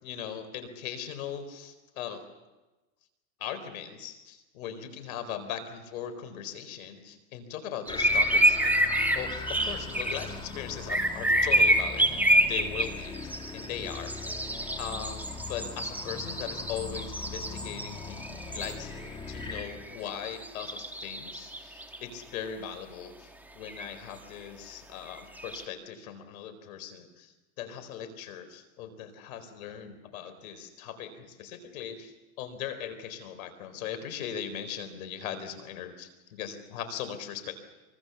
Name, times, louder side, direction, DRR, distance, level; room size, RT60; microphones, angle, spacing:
voice 1, 0.0-2.2 3.4-8.9 9.1-14.3 14.8-15.2 15.5-18.9 19.3-37.5, left 8 dB, 75° left, 9 dB, 4.4 m, -39 dB
sound 1, 7.9-19.7, left 4 dB, 10° left, 2.7 m, -40 dB
sound 2, 7.9-10.3 10.9-19.1 19.4-20.0 20.2-22.0 23.7-23.9 25.2-25.6, right 1 dB, 5° right, 2.4 m, -27 dB
24.5 x 24.5 x 7.1 m, 1.1 s
supercardioid pair, 120°, 42 cm